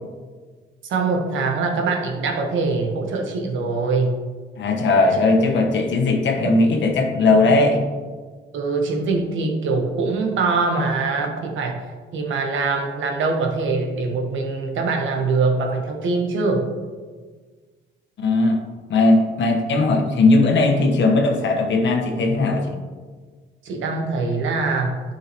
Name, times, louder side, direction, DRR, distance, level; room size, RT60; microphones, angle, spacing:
voice 1, 0.9-4.2 7.2-7.5 8.5-11.8 12.1-16.7 23.6-25.0, right 3 dB, 75° right, 2 dB, 1.3 m, -23 dB
voice 2, 4.6-7.8 18.2-18.6 18.9-22.8, left 2 dB, 65° left, 1 dB, 1.3 m, -18 dB
10.5 x 5.6 x 3.0 m, 1.4 s
cardioid pair, 90°, 20 cm